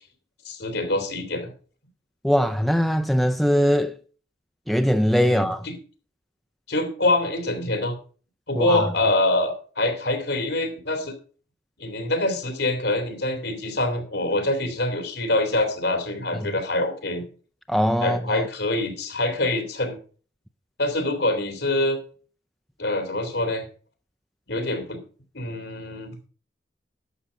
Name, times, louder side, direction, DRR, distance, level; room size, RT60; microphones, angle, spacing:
voice 1, 0.4-1.5 5.3-5.8 6.7-8.0 8.5-11.1 11.8-17.3 18.0-20.0 20.8-22.0 22.8-23.6 24.5-25.0 25.3-26.1, left 2 dB, 75° left, 2.8 m, -25 dB
voice 2, 2.2-4.0 4.7-5.7 8.6-8.9 16.3-16.5 17.7-18.4, equal, ahead, 0.4 m, -21 dB
11.0 x 6.8 x 5.1 m
head